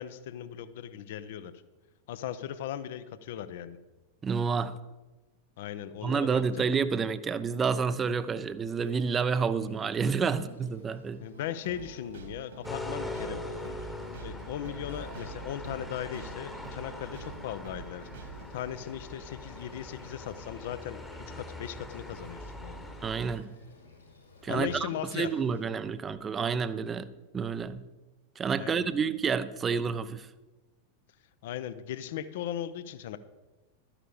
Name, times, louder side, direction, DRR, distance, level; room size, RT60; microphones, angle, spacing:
voice 1, 0.0-1.5 2.1-3.8 5.6-6.7 11.2-13.4 14.2-18.1 18.5-22.8 24.5-25.3 28.6-29.0 31.4-33.2, left 10 dB, 55° left, 14 dB, 0.7 m, -38 dB
voice 2, 4.2-4.7 6.0-11.3 23.0-23.5 24.4-27.1 27.3-27.9 28.4-30.3, right 5 dB, 20° right, 14 dB, 0.6 m, -29 dB
Insect, 8.6-25.6, left 3 dB, 80° left, 5.1 m, -53 dB
sound 1, 11.3-18.5, right 5 dB, 65° right, 2.0 m, -47 dB
sound 2, 12.6-23.4, left 1 dB, 5° left, 1.2 m, -42 dB
12.5 x 10.0 x 4.9 m, 1.1 s
figure-of-eight pair, 90°, 0 cm